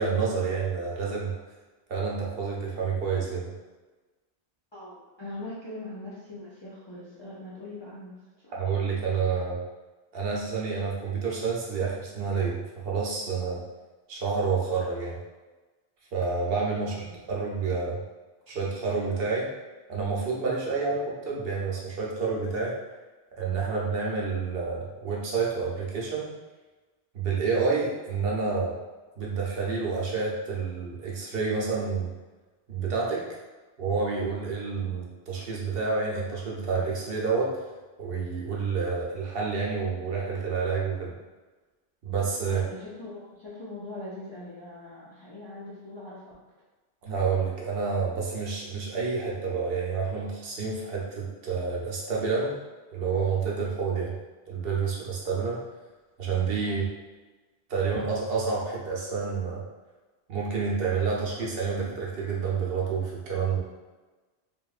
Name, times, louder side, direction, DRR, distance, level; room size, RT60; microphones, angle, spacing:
voice 1, 0.0-1.4 1.9-3.5 8.5-9.6 10.1-13.6 14.1-15.2 16.1-18.0 18.5-19.5 19.9-22.7 23.4-26.3 27.1-28.8 29.2-32.1 32.7-33.3 33.8-37.6 38.0-41.1 42.0-42.6 47.0-52.5 52.9-54.1 54.5-55.6 56.2-56.8 57.7-59.6 60.3-63.6, right 5 dB, 65° right, -3 dB, 0.8 m, -29 dB
voice 2, 4.7-8.6 16.8-17.1 42.4-46.3 56.6-56.8, left 2 dB, 45° left, -9 dB, 0.4 m, -42 dB
2.9 x 2.3 x 2.3 m, 1.2 s
omnidirectional pair, 1.1 m